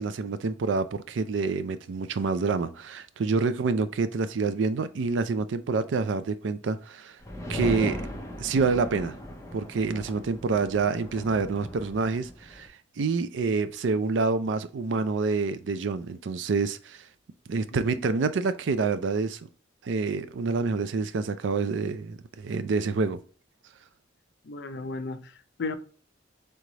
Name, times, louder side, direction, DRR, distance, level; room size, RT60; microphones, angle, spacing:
voice 1, 0.0-7.2 7.5-8.0 8.4-9.2 9.5-12.7 13.0-17.0 17.5-19.4 19.8-23.2, right 4 dB, 65° right, 0.4 m, -27 dB
sound 1, 7.2-12.7, equal, 15° left, 0.6 m, -37 dB
voice 2, 24.4-25.8, left 3 dB, 60° left, 0.5 m, -35 dB
3.5 x 3.2 x 3.8 m
head